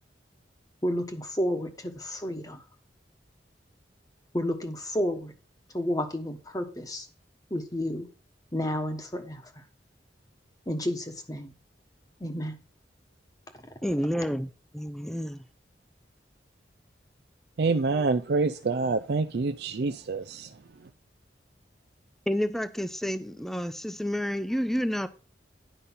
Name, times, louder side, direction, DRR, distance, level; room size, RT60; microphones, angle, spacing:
voice 1, 0.8-2.6 4.3-5.3 5.7-7.1 7.5-8.1 8.5-9.4 10.7-11.5 12.2-12.6, equal, 20° left, 1.2 m, -31 dB
voice 2, 13.8-15.4 22.3-25.1, equal, ahead, 0.5 m, -30 dB
voice 3, 17.6-20.5, right 3 dB, 60° right, 0.5 m, -26 dB
10.5 x 5.5 x 5.6 m
head